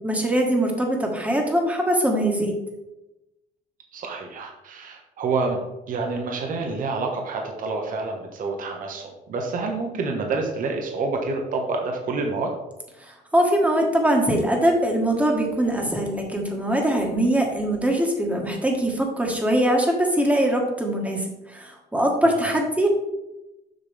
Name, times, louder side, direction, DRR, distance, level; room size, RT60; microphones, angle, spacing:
voice 1, 0.0-2.6 13.0-22.9, right 1 dB, 10° right, 1 dB, 1.7 m, -22 dB
voice 2, 3.9-5.6 5.9-12.5 22.2-22.6, right 3 dB, 55° right, 2 dB, 1.4 m, -28 dB
7.9 x 5.9 x 3.5 m, 0.95 s
cardioid pair, 110°, 17 cm